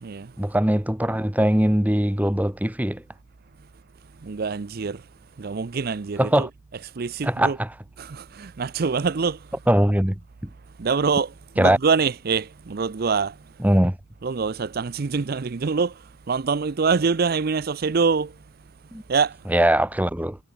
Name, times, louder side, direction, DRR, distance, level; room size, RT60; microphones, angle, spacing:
voice 1, 0.4-3.0 6.2-6.5 7.2-7.7 9.7-10.2 11.6-11.8 13.6-14.0 18.9-19.0 19.5-20.4, right 1 dB, 10° right, 1.1 m, -21 dB
voice 2, 4.2-5.0 5.4-6.5 6.8-7.6 8.0-9.4 10.8-13.3 14.2-15.9 16.3-18.3 19.1-19.4, right 5 dB, 45° right, 0.5 m, -25 dB
head